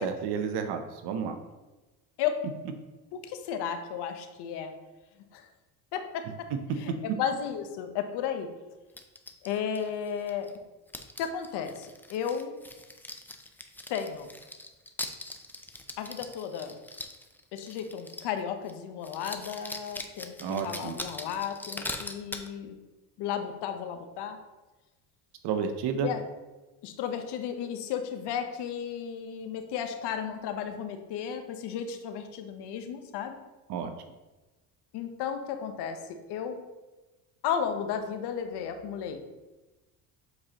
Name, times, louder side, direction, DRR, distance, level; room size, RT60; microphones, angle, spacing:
voice 1, 0.0-1.3 20.4-21.0 25.4-26.1 33.7-33.9, right 6 dB, 65° right, 7 dB, 0.7 m, -31 dB
voice 2, 3.1-4.7 5.3-5.5 5.9-6.5 6.7-8.5 9.4-10.5 11.2-12.5 13.9-14.3 16.0-16.8 17.5-22.8 23.2-24.4 26.0-26.2 26.8-33.4 34.9-36.6 37.4-39.2, left 8 dB, 65° left, 7 dB, 0.9 m, -34 dB
sound 1, 9.0-10.6 10.9-18.4 18.7-18.8 19.0-22.5, left 2 dB, 5° left, 0.4 m, -41 dB
7.7 x 4.2 x 2.9 m, 1.1 s
supercardioid pair, 100°, 43 cm